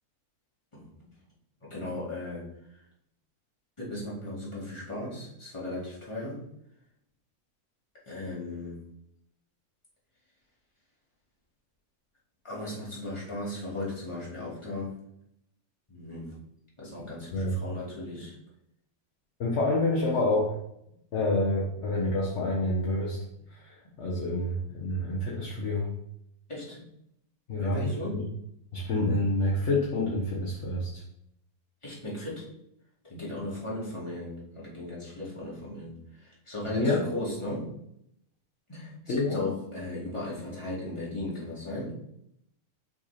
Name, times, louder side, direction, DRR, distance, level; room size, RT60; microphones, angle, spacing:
voice 1, 1.7-2.5 2.7-2.8 3.8-6.4 8.1-8.8 12.4-14.9 15.9-16.4 16.8-18.3 19.9-20.0 26.5-26.8 27.6-28.2 31.8-32.5 33.0-37.7 38.7-41.9, left 1 dB, 20° left, -7 dB, 2.3 m, -37 dB
voice 2, 19.4-20.6 21.1-23.2 23.5-25.9 27.5-28.2 28.7-31.0 36.7-37.1 39.1-39.4, left 2 dB, 50° left, -4 dB, 1.3 m, -28 dB
5.8 x 4.1 x 4.2 m, 0.76 s
omnidirectional pair, 1.6 m